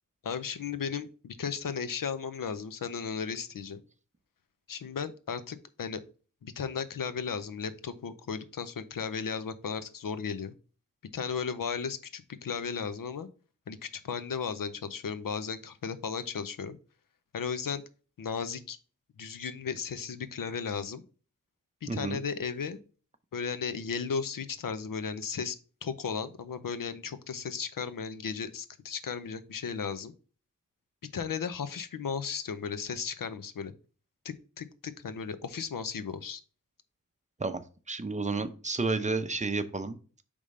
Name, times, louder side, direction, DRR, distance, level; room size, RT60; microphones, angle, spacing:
voice 1, 0.2-3.8 4.7-6.0 6.4-10.5 11.1-13.3 13.7-16.8 17.3-17.8 18.2-18.8 19.2-21.0 21.8-22.8 23.3-25.6 25.8-30.1 31.1-33.7 34.2-36.4, left 6 dB, 85° left, 13 dB, 0.7 m, -35 dB
voice 2, 21.9-22.2 37.4-40.2, right 3 dB, 20° right, 9 dB, 0.6 m, -31 dB
5.0 x 3.5 x 5.3 m, 0.38 s
wide cardioid pair, 80°, 32 cm